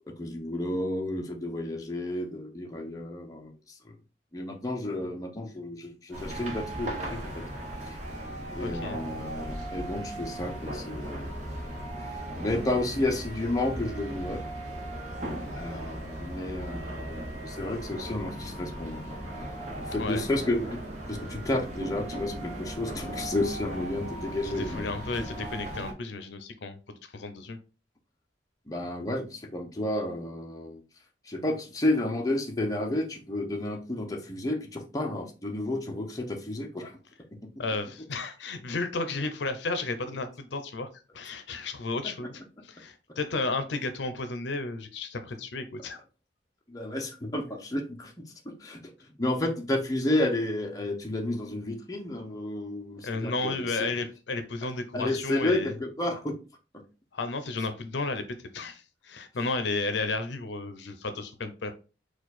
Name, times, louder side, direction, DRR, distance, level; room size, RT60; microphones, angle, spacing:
voice 1, 0.1-4.0 4.3-7.4 7.8-8.0 8.5-11.3 12.1-14.4 15.5-19.2 19.7-20.8 21.1-24.9 28.7-30.8 31.2-37.0 37.3-37.5 46.7-48.8 49.2-53.9 54.9-56.4 56.7-56.8, left 1 dB, 20° left, 1 dB, 0.6 m, -31 dB
sound 1, 6.1-25.9, right 1 dB, 40° right, 1.0 m, -37 dB
voice 2, 8.6-9.0 20.0-20.2 24.4-27.6 37.6-40.9 41.1-46.0 53.0-55.7 57.1-61.7, left 3 dB, 70° left, 9 dB, 0.6 m, -33 dB
4.5 x 2.3 x 4.0 m, 0.33 s
head